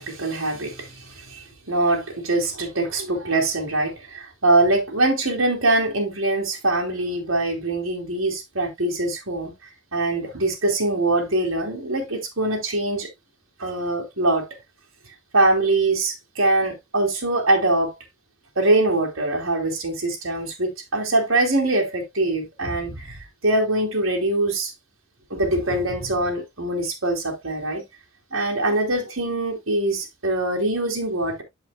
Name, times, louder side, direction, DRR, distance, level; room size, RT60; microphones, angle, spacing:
voice 1, 0.0-9.5 9.9-13.1 13.6-14.5 15.3-17.9 18.5-24.7 25.3-27.8 28.3-31.4, right 2 dB, 70° right, 3.2 m, -23 dB
13.5 x 5.1 x 2.3 m
head